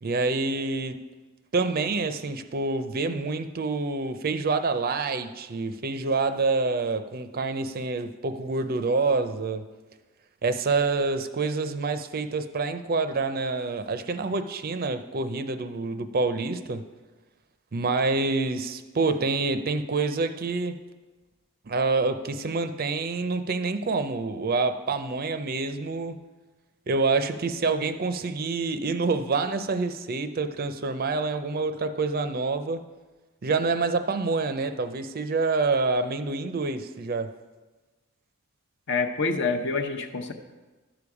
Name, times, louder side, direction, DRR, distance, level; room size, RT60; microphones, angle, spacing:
voice 1, 0.0-1.0 1.5-9.7 10.4-16.8 17.7-20.8 21.7-26.2 26.9-32.8 33.4-37.3, right 3 dB, 40° right, 10 dB, 0.5 m, -27 dB
voice 2, 38.9-40.3, left 4 dB, 55° left, 6 dB, 0.8 m, -27 dB
11.5 x 6.9 x 4.8 m, 1.2 s
head